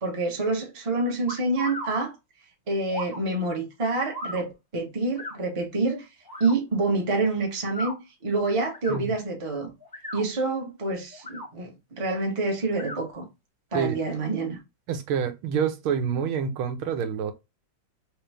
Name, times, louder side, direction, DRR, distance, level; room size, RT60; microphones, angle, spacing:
voice 1, 0.0-2.1 2.7-6.1 6.4-9.7 10.1-13.3 13.7-14.6, right 3 dB, 25° right, 0.6 m, -27 dB
sound 1, 1.3-1.9 2.9-3.2 4.1-4.4 5.2-5.4 6.3-6.5 7.6-7.9 8.7-9.0 9.8-10.3 11.1-11.5 12.7-13.0, left 1 dB, 20° left, 0.6 m, -36 dB
voice 2, 14.9-17.3, right 7 dB, 90° right, 1.6 m, -27 dB
3.5 x 3.0 x 3.3 m
omnidirectional pair, 2.3 m